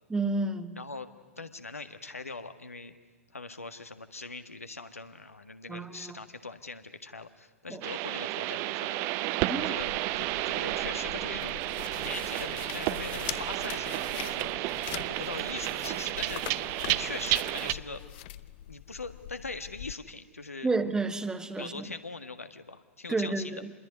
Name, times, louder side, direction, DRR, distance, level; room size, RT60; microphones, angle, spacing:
voice 1, 0.1-0.8 5.7-6.2 7.7-7.8 9.4-9.8 20.6-21.9 23.1-23.7, right 3 dB, 10° right, 1.3 m, -31 dB
voice 2, 0.8-2.9 3.3-9.1 9.5-9.9 10.2-11.5 12.0-18.0 18.7-20.7 21.6-23.6, left 3 dB, 80° left, 1.6 m, -41 dB
sound 1, 7.8-17.7, right 17 dB, 35° right, 0.8 m, -32 dB
sound 2, 9.8-19.9, left 14 dB, 45° left, 0.8 m, -43 dB
sound 3, 10.4-18.1, left 5 dB, 10° left, 2.2 m, -52 dB
26.5 x 21.5 x 9.6 m
figure-of-eight pair, 100°, 8 cm